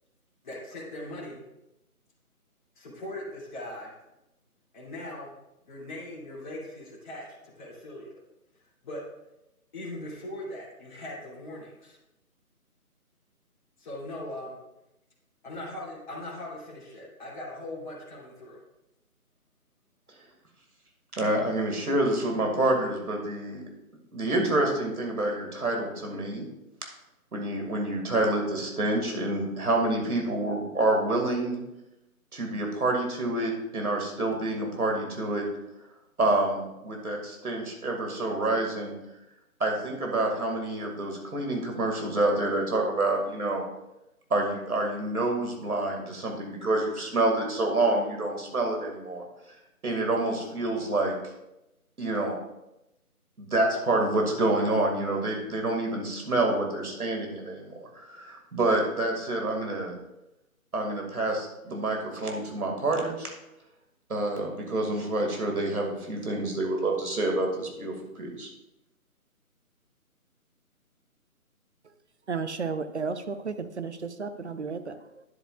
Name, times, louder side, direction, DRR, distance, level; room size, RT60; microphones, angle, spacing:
voice 1, 0.4-1.4 2.8-3.9 4.7-5.3 5.7-8.1 8.8-9.0 9.7-12.0 13.8-14.6 15.4-18.6, left 1 dB, 30° left, -8 dB, 2.6 m, -40 dB
voice 2, 21.2-23.6 24.1-26.5 27.3-31.6 32.3-35.4 36.2-38.9 39.6-43.6 44.3-49.2 49.8-51.1 52.0-52.4 53.4-59.9 60.7-63.3 64.1-68.5, right 2 dB, 75° right, 1 dB, 2.2 m, -27 dB
voice 3, 72.3-75.2, right 5 dB, 50° right, 11 dB, 0.6 m, -33 dB
10.0 x 8.0 x 2.4 m, 0.91 s
figure-of-eight pair, 160°, 45 cm